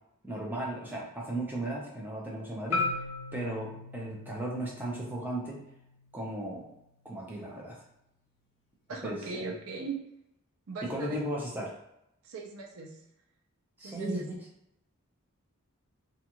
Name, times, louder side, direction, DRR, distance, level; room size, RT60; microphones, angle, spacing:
voice 1, 0.2-2.9 3.3-5.6 6.1-6.7 7.0-7.8 9.0-9.4 10.8-11.7 13.8-14.3, right 1 dB, 10° right, -4 dB, 0.6 m, -36 dB
Marimba xylophone, 2.7-6.9, left 3 dB, 70° left, 0.6 m, -38 dB
voice 2, 8.9-10.0 10.7-11.2 12.2-12.9 13.8-14.3, right 3 dB, 75° right, 0 dB, 0.5 m, -38 dB
2.4 x 2.4 x 2.9 m, 0.82 s
head